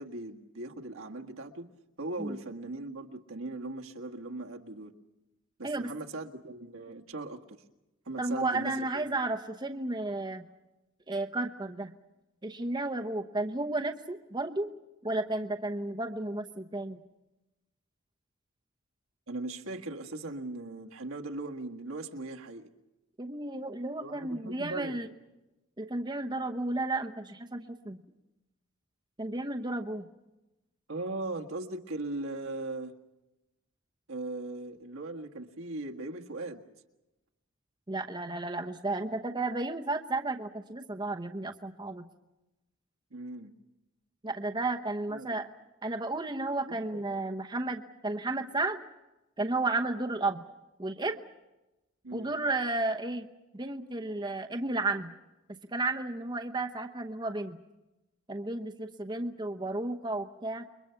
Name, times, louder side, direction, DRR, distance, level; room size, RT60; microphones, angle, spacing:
voice 1, 0.0-1.7 2.0-4.9 5.6-7.4 8.0-9.0 19.3-22.7 24.0-25.0 30.9-32.9 34.1-36.6 43.1-43.5 45.1-45.3 46.6-47.3 52.0-52.3, right 2 dB, 75° right, 2 dB, 1.7 m, -39 dB
voice 2, 8.2-10.5 11.1-11.9 12.4-14.7 15.0-17.0 23.2-25.1 25.8-28.0 29.2-30.1 37.9-42.0 44.2-45.5 45.8-48.8 49.4-50.4 50.8-51.2 52.1-53.3 53.5-55.1 55.7-57.6 58.3-60.7, right 2 dB, 20° right, 4 dB, 0.9 m, -33 dB
29.0 x 23.0 x 5.8 m, 1.0 s
head